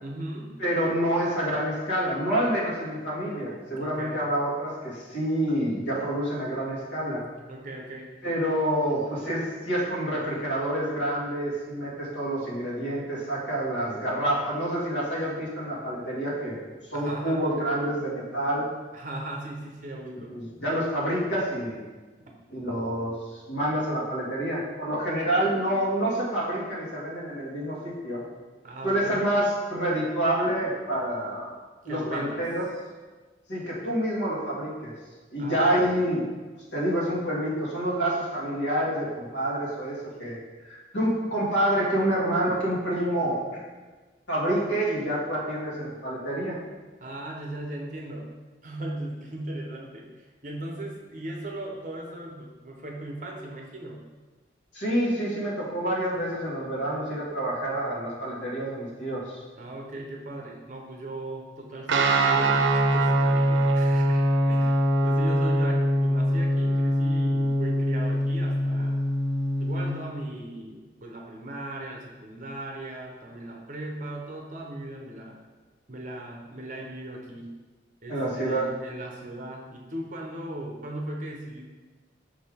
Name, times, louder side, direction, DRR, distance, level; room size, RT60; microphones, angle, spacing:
voice 1, 0.0-0.5 3.8-4.3 7.5-8.1 16.9-17.4 18.9-20.4 22.2-22.3 28.6-29.2 31.8-32.5 35.4-35.9 47.0-48.3 48.6-54.0 59.6-69.0 69.6-75.4 75.9-77.5 78.0-81.6, right 1 dB, 45° right, 0 dB, 0.9 m, -38 dB
voice 2, 0.6-7.2 8.2-16.6 16.9-18.7 20.3-21.8 22.5-23.1 23.5-28.2 28.8-31.5 31.8-32.6 33.5-34.9 35.3-36.2 36.7-40.4 40.7-43.6 44.3-46.6 54.7-59.4 78.1-78.7, right 1 dB, 75° left, -5 dB, 2.0 m, -27 dB
Guitar, 61.9-69.9, right 1 dB, 85° right, 0.6 m, -23 dB
6.0 x 5.1 x 3.6 m, 1.3 s
head